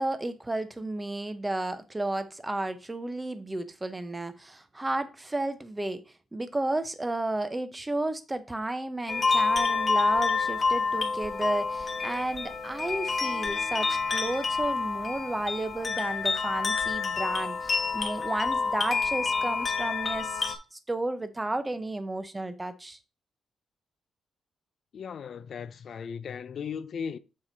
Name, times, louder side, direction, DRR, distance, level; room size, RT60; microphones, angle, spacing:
voice 1, 0.0-6.0 6.3-23.0, right 2 dB, 15° right, 0.7 m, -32 dB
sound 1, 9.1-20.6, left 4 dB, 35° left, 1.1 m, -28 dB
voice 2, 24.9-27.2, left 7 dB, 55° left, 0.4 m, -37 dB
7.4 x 4.8 x 3.9 m
wide cardioid pair, 155°, 0 cm